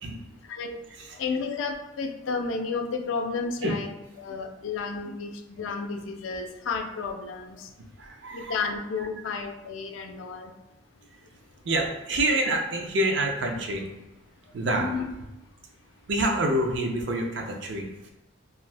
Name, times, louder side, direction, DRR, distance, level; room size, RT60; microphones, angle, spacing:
voice 1, 0.0-0.3 0.9-1.2 3.6-3.8 7.8-8.7 9.0-9.1 11.1-11.2 11.6-14.0 14.5-14.9 16.1-18.1, right 1 dB, 65° right, 2 dB, 0.5 m, -27 dB
voice 2, 1.2-3.9 4.2-7.7 8.3-10.5 14.8-15.1, left 4 dB, 80° left, 6 dB, 0.4 m, -32 dB
2.6 x 2.3 x 3.2 m, 0.99 s
head